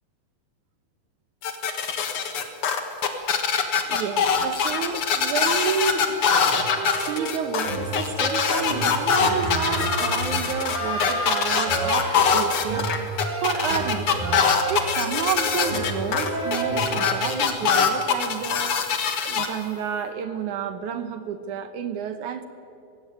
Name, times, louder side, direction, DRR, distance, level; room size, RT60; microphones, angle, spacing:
sound 1, 1.4-19.5, left 6 dB, 50° left, 1.8 m, -23 dB
voice 1, 3.9-6.2 7.0-14.3 14.7-18.8 19.2-22.4, right 7 dB, 70° right, 9 dB, 2.1 m, -30 dB
sound 2, 6.5-17.4, right 2 dB, 20° right, 1.0 m, -31 dB
sound 3, 9.1-12.8, left 2 dB, 75° left, 5.3 m, -33 dB
19.5 x 16.0 x 9.2 m, 2.6 s
omnidirectional pair, 4.1 m